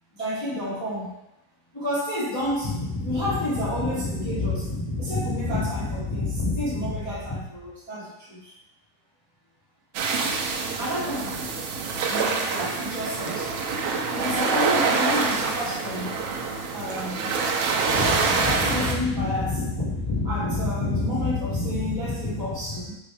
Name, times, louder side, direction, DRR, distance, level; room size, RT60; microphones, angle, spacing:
voice 1, 0.1-1.2 1.7-8.5 10.6-11.5 12.0-13.5 14.1-16.1 16.7-17.3 17.8-23.0, left 1 dB, 40° left, -10 dB, 0.3 m, -28 dB
sound 1, 10.0-18.9, right 4 dB, 90° right, 2.6 m, -26 dB
6.0 x 3.4 x 5.7 m, 0.82 s
omnidirectional pair, 4.1 m